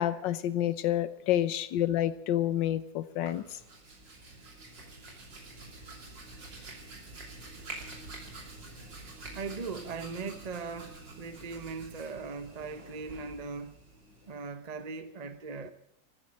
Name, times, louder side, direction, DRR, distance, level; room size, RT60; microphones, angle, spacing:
voice 1, 0.0-3.4, left 12 dB, 80° left, 1.5 m, -28 dB
Hands, 3.1-14.5, right 2 dB, 75° right, 3.8 m, -47 dB
voice 2, 9.3-13.7 14.3-15.7, right 4 dB, 30° right, 0.8 m, -39 dB
13.5 x 9.6 x 9.8 m
omnidirectional pair, 2.0 m